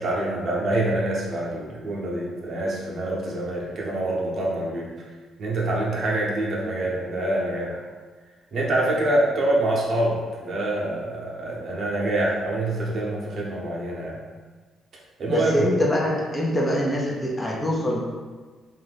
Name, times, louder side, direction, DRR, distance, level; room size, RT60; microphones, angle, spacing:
voice 1, 0.0-4.9 5.4-7.8 8.5-14.2 15.2-15.7, right 1 dB, 55° right, -4 dB, 0.7 m, -26 dB
voice 2, 15.3-18.0, equal, 15° left, -3 dB, 0.5 m, -24 dB
2.6 x 2.3 x 3.4 m, 1.4 s
cardioid pair, 100°, 0 cm